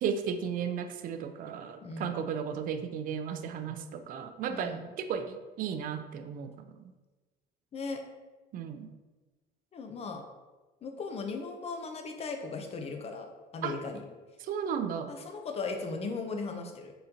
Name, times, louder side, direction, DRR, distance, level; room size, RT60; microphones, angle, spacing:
voice 1, 0.0-6.5 6.8-6.9 8.5-8.9 13.6-13.8 14.4-15.1, right 7 dB, 55° right, 9 dB, 0.4 m, -34 dB
voice 2, 1.8-2.2 4.5-4.9 7.7-8.0 9.7-10.2 10.8-14.0 15.1-16.9, left 4 dB, 40° left, 4 dB, 0.6 m, -37 dB
4.1 x 3.7 x 2.8 m, 1.2 s
cardioid pair, 110°, 17 cm